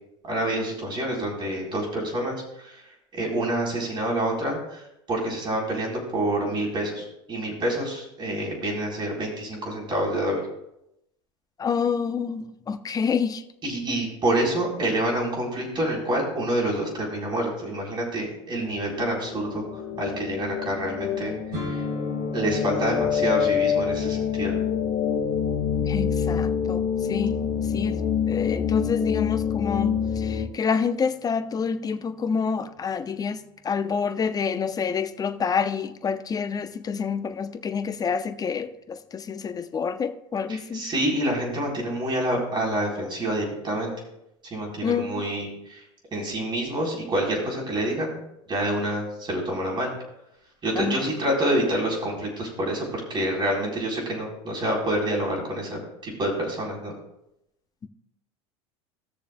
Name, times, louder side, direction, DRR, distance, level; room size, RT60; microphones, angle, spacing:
voice 1, 0.2-2.8 3.1-10.4 13.6-21.3 22.3-24.6 40.5-43.9 44.4-45.8 46.1-48.2 48.5-49.9 50.6-56.9, right 1 dB, 30° right, -2 dB, 4.1 m, -27 dB
voice 2, 11.6-13.4 25.8-27.4 27.7-40.8 44.8-45.2 50.7-51.1 57.8-57.9, left 6 dB, 25° left, 9 dB, 0.7 m, -28 dB
sound 1, 18.6-30.5, left 7 dB, 45° left, 1.5 m, -26 dB
sound 2, 21.5-29.3, left 1 dB, 70° right, 3.9 m, -39 dB
18.0 x 6.8 x 2.3 m, 0.83 s
hypercardioid pair, 85°, 15 cm